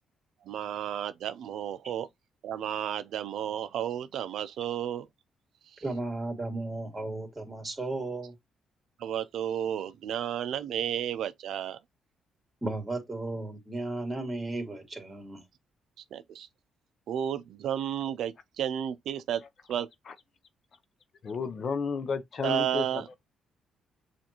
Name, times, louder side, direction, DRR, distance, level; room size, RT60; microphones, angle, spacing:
voice 1, 0.5-2.1 2.4-5.1 9.0-11.8 16.1-16.5 17.1-19.4 19.7-19.9 22.4-23.1, right 10 dB, 75° right, 0.4 m, -32 dB
voice 2, 5.8-8.3 12.6-15.4, right 2 dB, 20° right, 2.0 m, -34 dB
voice 3, 21.2-22.8, left 5 dB, 50° left, 0.6 m, -32 dB
6.9 x 2.5 x 2.9 m
cardioid pair, 90°, 0 cm